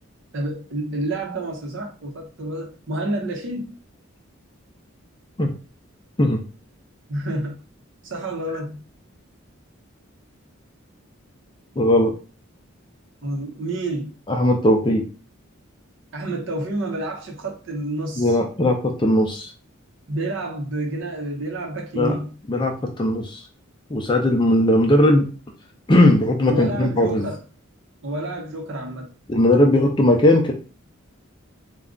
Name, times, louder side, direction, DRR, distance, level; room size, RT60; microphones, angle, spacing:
voice 1, 0.3-3.7 7.1-7.6 8.0-8.8 13.2-14.1 16.1-18.4 20.1-22.3 26.5-27.4 28.0-29.1, right 2 dB, 60° right, 0.7 m, -29 dB
voice 2, 11.8-12.1 14.3-15.0 18.2-19.5 21.9-22.2 22.5-23.4 23.9-25.2 25.9-27.3 29.3-30.5, left 1 dB, 20° left, 0.4 m, -18 dB
2.4 x 2.2 x 3.6 m
head